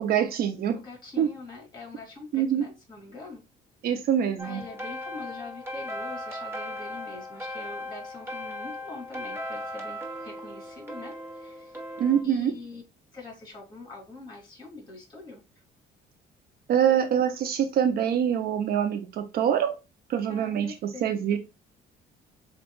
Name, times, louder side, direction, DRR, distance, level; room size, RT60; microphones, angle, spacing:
voice 1, 0.0-0.8 1.2-1.3 2.3-2.7 3.8-4.6 12.0-12.5 16.7-19.8 20.1-20.7 21.0-21.4, right 9 dB, 65° right, 0.7 m, -25 dB
voice 2, 0.7-3.4 4.4-11.8 12.2-12.8 13.1-15.4 20.3-21.4, left 3 dB, 25° left, 2.9 m, -43 dB
sound 1, 4.4-12.2, left 1 dB, 15° right, 1.4 m, -37 dB
7.0 x 2.5 x 2.3 m
cardioid pair, 110°, 17 cm